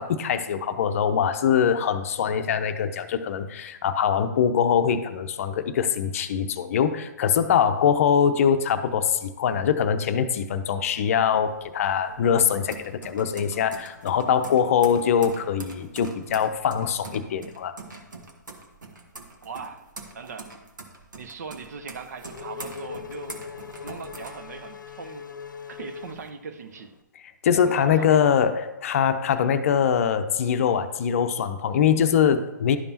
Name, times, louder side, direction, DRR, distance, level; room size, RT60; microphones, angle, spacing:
voice 1, 0.0-17.7 27.4-32.8, left 8 dB, 45° left, 9 dB, 0.6 m, -23 dB
sound 1, 11.2-25.1 25.5-26.3, right 3 dB, 75° right, 1.3 m, -44 dB
voice 2, 19.4-19.9 20.1-20.5 21.1-23.4 23.8-25.3 25.7-26.9 27.7-28.2, right 5 dB, 55° right, 8 dB, 0.8 m, -39 dB
Race car auto racing / Accelerating revving vroom, 21.7-26.9, left 6 dB, 85° left, 0.7 m, -41 dB
11.5 x 5.3 x 2.9 m, 0.99 s
figure-of-eight pair, 135°, 10 cm